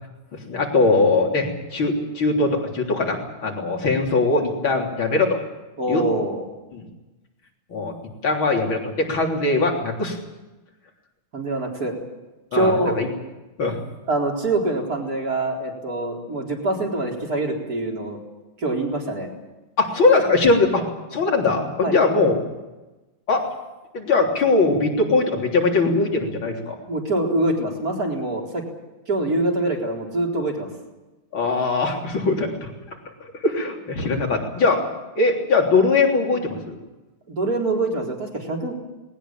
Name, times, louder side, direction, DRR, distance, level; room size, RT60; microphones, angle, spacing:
voice 1, 0.5-5.4 5.9-6.0 6.7-6.9 7.7-7.9 8.2-10.2 12.5-13.1 13.6-13.8 19.8-20.8 21.1-22.4 23.3-23.5 23.9-26.8 31.3-32.7 33.2-34.9 35.2-36.8, left 3 dB, 70° left, 1 dB, 4.3 m, -21 dB
voice 2, 5.8-6.4 11.3-11.9 12.5-13.0 14.1-18.2 18.6-19.3 21.8-22.0 26.9-28.6 29.1-30.7 37.3-38.7, right 2 dB, 45° right, 0 dB, 4.6 m, -24 dB
20.0 x 18.5 x 8.9 m, 1.1 s
omnidirectional pair, 2.3 m